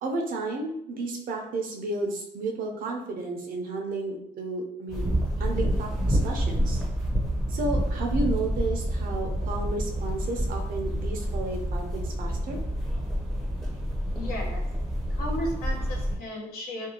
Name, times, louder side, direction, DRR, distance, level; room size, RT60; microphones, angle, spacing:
voice 1, 0.0-5.1 5.4-6.8 7.5-12.6, right 2 dB, 55° right, 1 dB, 0.6 m, -32 dB
sound 1, 4.9-16.2, equal, ahead, 0.7 m, -28 dB
voice 2, 14.1-14.8 15.1-16.9, equal, 65° left, -1 dB, 0.8 m, -35 dB
2.6 x 2.3 x 2.8 m, 0.78 s
cardioid pair, 110°, 17 cm